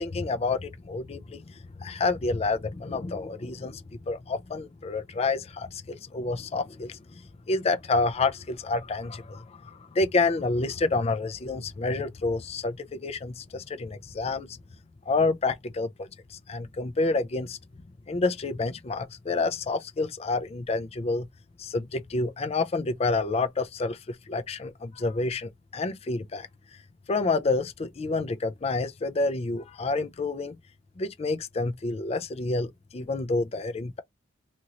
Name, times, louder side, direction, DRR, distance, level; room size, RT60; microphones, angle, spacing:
voice 1, 0.0-14.6 15.1-21.3 21.6-26.5 27.1-30.6 31.0-34.0, left 3 dB, 35° left, 0.4 m, -29 dB
3.0 x 2.5 x 2.8 m
head